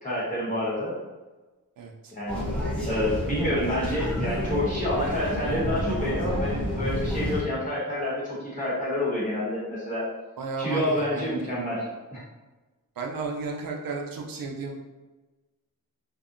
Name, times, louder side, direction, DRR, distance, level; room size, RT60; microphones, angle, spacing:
voice 1, 0.0-0.9 2.1-2.4 2.8-10.1 10.6-11.8 12.1-12.2, left 1 dB, 20° left, -8 dB, 0.9 m, -28 dB
voice 2, 1.8-2.1 10.4-11.4 13.0-14.8, right 4 dB, 70° right, 1 dB, 0.5 m, -33 dB
sound 1, 2.3-7.4, equal, 5° left, 0.5 m, -29 dB
2.7 x 2.0 x 2.4 m, 1.2 s
wide cardioid pair, 165°, 35 cm